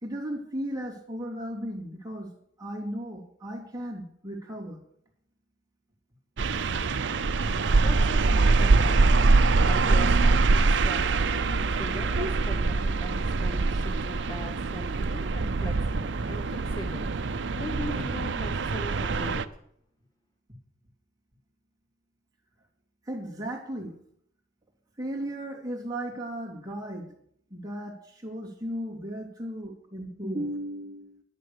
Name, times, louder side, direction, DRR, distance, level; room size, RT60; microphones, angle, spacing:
voice 1, 0.0-2.3 2.6-4.8 11.5-11.7 12.1-12.4 17.9-18.0 23.1-24.0 25.0-27.2 27.5-31.2, equal, 20° right, -1 dB, 2.9 m, -35 dB
sound 1, 6.4-19.4, right 3 dB, 70° right, 0.6 m, -24 dB
voice 2, 7.8-19.5, equal, 20° left, 4 dB, 1.1 m, -41 dB
11.0 x 10.5 x 6.8 m, 0.70 s
head